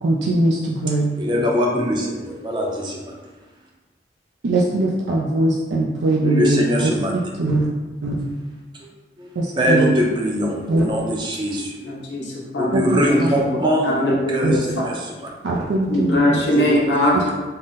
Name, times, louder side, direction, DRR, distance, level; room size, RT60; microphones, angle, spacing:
voice 1, 0.0-1.1 4.4-7.0 7.4-7.7 8.0-8.2 9.4-9.9 10.7-10.8 12.7-12.8 13.2-13.4 14.4-14.6 15.4-16.4, right 2 dB, 90° right, -3 dB, 0.4 m, -21 dB
voice 2, 1.2-3.1 6.2-7.1 8.7-8.9 9.2-9.3 9.6-11.9 12.6-15.3 16.5-16.7, equal, 25° right, -1 dB, 0.5 m, -22 dB
voice 3, 11.8-13.6 13.8-14.9 15.9-17.3, left 1 dB, 85° left, -4 dB, 0.8 m, -21 dB
3.8 x 2.1 x 3.9 m, 1.2 s
head